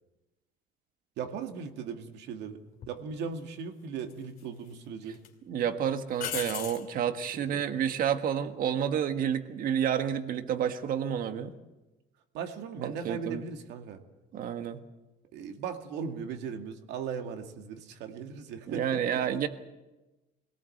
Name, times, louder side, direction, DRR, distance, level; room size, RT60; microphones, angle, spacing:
voice 1, 1.2-2.6 2.9-5.2 7.3-7.7 12.3-14.0 15.3-19.5, right 6 dB, 70° right, 5 dB, 2.3 m, -38 dB
sound 1, 2.8-3.0 4.1-4.7 5.1-5.3 6.2-6.9 10.0-10.4, left 10 dB, 50° left, 2.6 m, -37 dB
voice 2, 5.5-11.5 12.8-13.4 14.3-14.8 18.7-19.5, right 9 dB, 50° right, 8 dB, 1.6 m, -30 dB
22.5 x 18.5 x 7.9 m, 1.1 s
cardioid pair, 135°, 18 cm